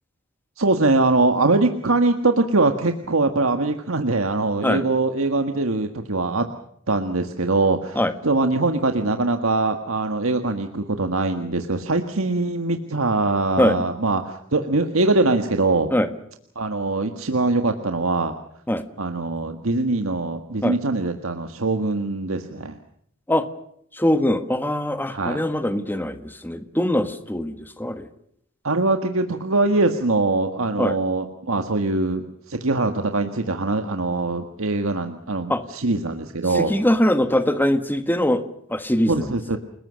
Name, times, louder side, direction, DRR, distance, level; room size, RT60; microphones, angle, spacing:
voice 1, 0.6-6.4 6.9-15.9 16.5-18.3 19.0-22.8 25.1-25.4 28.6-36.7 39.1-39.6, right 2 dB, 80° right, 6 dB, 1.7 m, -22 dB
voice 2, 23.9-28.1 30.8-31.0 35.5-35.6 36.5-39.3, left 1 dB, 10° left, 10 dB, 1.4 m, -22 dB
29.5 x 20.0 x 6.4 m, 0.70 s
head